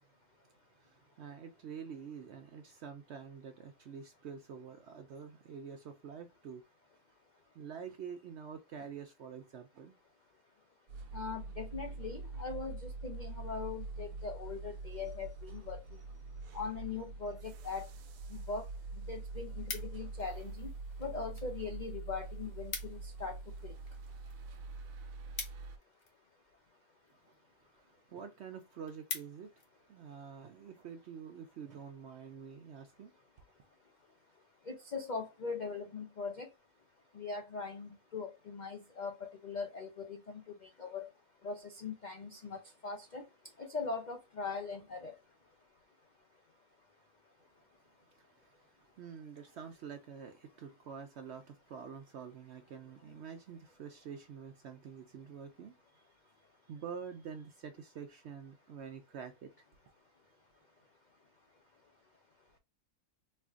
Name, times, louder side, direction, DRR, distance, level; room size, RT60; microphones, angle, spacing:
voice 1, 0.8-6.6 7.5-9.9 27.3-27.4 27.8-29.5 29.9-33.1 48.3-48.5 49.0-55.7 56.7-59.5, right 7 dB, 70° right, 0.6 m, -47 dB
sound 1, 10.9-25.8, right 3 dB, 90° right, 1.2 m, -44 dB
voice 2, 11.1-15.8 16.5-17.9 18.5-18.6 19.1-20.7 21.0-23.4 23.6-23.7 34.7-36.5 37.1-40.4 40.8-41.1 41.4-43.2 43.6-45.1, left 4 dB, 90° left, 0.4 m, -41 dB
sound 2, 19.3-20.3 21.0-21.5 21.8-21.9 22.2-22.3 22.5-23.1 23.5-26.3 27.1-27.4 27.9-28.0 28.3-28.4 28.7-29.7 30.2-30.4, left 4 dB, 45° left, 1.0 m, -44 dB
4.3 x 2.5 x 2.4 m
omnidirectional pair, 1.6 m